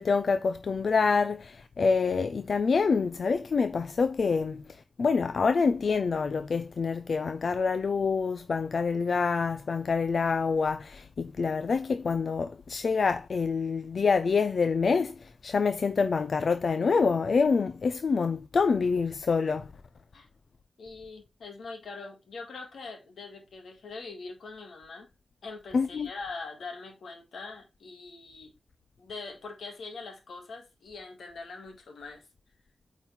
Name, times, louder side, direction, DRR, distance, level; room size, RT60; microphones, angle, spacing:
voice 1, 0.0-4.6 5.0-19.7 25.7-26.1, left 5 dB, 65° left, 0.5 m, -26 dB
voice 2, 20.8-25.1 25.4-28.5 29.0-32.2, left 3 dB, 85° left, 1.9 m, -42 dB
8.6 x 4.1 x 4.1 m
wide cardioid pair, 80°, 0 cm